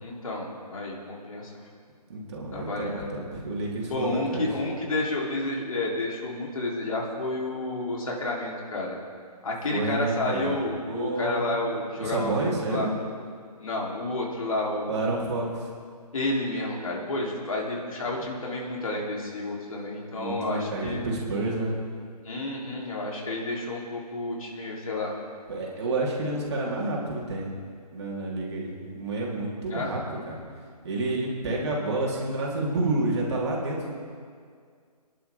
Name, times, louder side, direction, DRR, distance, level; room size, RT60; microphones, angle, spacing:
voice 1, 0.0-1.5 2.5-3.1 3.9-9.0 9.4-12.9 13.6-15.0 16.1-21.0 22.2-25.1 29.7-29.9, left 2 dB, 55° left, -2 dB, 3.5 m, -30 dB
voice 2, 2.1-4.5 9.7-11.5 12.0-12.9 14.9-15.7 19.6-19.8 20.1-21.7 25.5-27.5 27.9-30.4 30.8-33.9, right 2 dB, 40° right, -4 dB, 3.6 m, -29 dB
27.0 x 11.0 x 3.7 m, 2.1 s
figure-of-eight pair, 145°, 21 cm